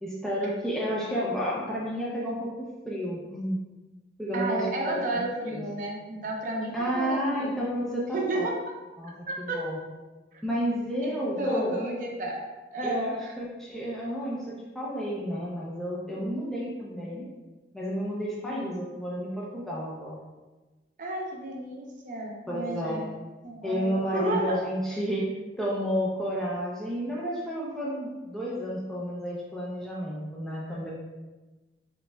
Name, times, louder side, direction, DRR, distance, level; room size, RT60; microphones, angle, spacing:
voice 1, 0.0-2.5 2.9-3.6 4.2-5.2 5.5-5.7 6.7-8.5 9.0-9.8 10.4-11.8 12.8-17.2 17.7-20.2 22.5-23.1 23.6-25.3 25.6-30.9, equal, 5° left, -6 dB, 0.5 m, -31 dB
voice 2, 4.3-7.5 8.1-8.6 9.3-9.7 10.3-10.4 11.0-12.4 12.7-13.4 18.4-18.6 21.0-23.1 23.4-24.6, right 1 dB, 45° right, -1 dB, 0.7 m, -32 dB
5.0 x 3.3 x 2.3 m, 1.2 s
head